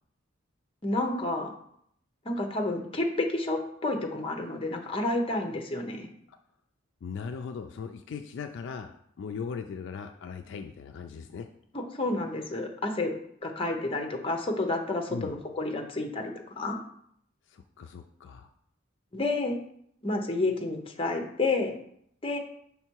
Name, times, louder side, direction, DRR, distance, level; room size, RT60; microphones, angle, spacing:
voice 1, 0.8-1.5 2.2-6.1 11.7-13.1 13.4-16.8 19.1-19.6 20.0-21.7 22.2-22.4, left 2 dB, 25° left, 3 dB, 0.7 m, -30 dB
voice 2, 7.0-8.9 9.2-11.5 15.1-15.3 17.5-18.5, left 5 dB, 60° left, 6 dB, 0.3 m, -38 dB
5.7 x 3.6 x 4.5 m, 0.70 s
head